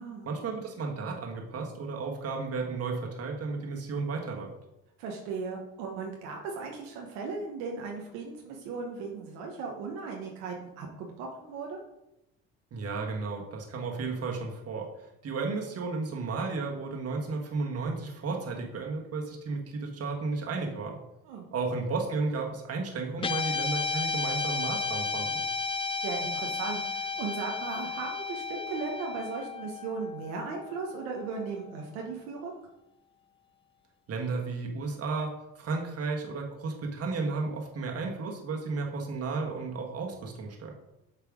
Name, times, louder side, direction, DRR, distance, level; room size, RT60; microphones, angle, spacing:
voice 1, 0.2-4.5 12.7-14.9 15.2-21.0 21.5-25.4 34.1-40.7, right 4 dB, 50° right, 1 dB, 1.6 m, -33 dB
voice 2, 5.0-11.8 21.3-21.4 26.0-32.5, right 4 dB, 85° right, 0 dB, 1.0 m, -37 dB
Guitar, 23.2-31.7, left 4 dB, 20° left, 0.3 m, -33 dB
7.0 x 3.3 x 4.9 m, 0.89 s
supercardioid pair, 70°, 31 cm